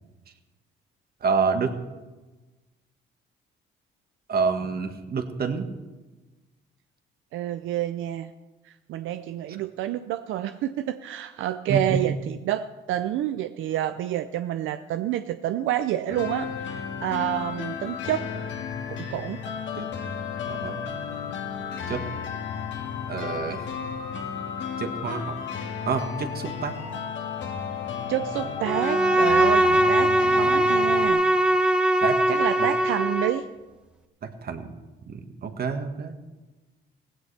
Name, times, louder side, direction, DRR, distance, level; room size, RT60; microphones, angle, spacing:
voice 1, 1.2-1.7 4.3-5.7 11.7-12.0 16.7-16.8 19.7-19.9 20.5-20.8 21.9-22.0 23.1-23.7 24.8-25.4 25.8-26.8 32.0-32.2 32.6-32.7 34.2-34.7 35.1-36.2, right 5 dB, 50° right, 7 dB, 1.5 m, -28 dB
voice 2, 7.3-8.3 8.7-18.3 18.9-19.4 28.1-31.2 32.3-33.5, right 12 dB, 85° right, 10 dB, 0.5 m, -28 dB
sound 1, 16.1-31.1, left 7 dB, 70° left, 1.8 m, -33 dB
Bowed string instrument, 28.6-33.4, right 1 dB, 5° right, 0.9 m, -21 dB
17.0 x 16.0 x 3.3 m, 1.2 s
cardioid pair, 90°, 20 cm